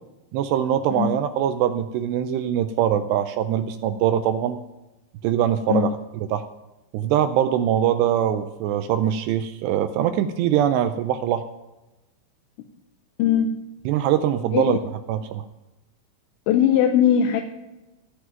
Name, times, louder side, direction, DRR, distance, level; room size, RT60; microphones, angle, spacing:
voice 1, 0.3-4.6 5.2-5.9 6.3-6.4 6.9-11.4 13.9-14.8 15.1-15.5, right 10 dB, 80° right, 10 dB, 2.5 m, -22 dB
voice 2, 13.2-13.6 14.5-14.8 16.5-17.4, left 9 dB, 80° left, 6 dB, 3.0 m, -19 dB
16.5 x 5.8 x 9.2 m, 1.0 s
omnidirectional pair, 5.4 m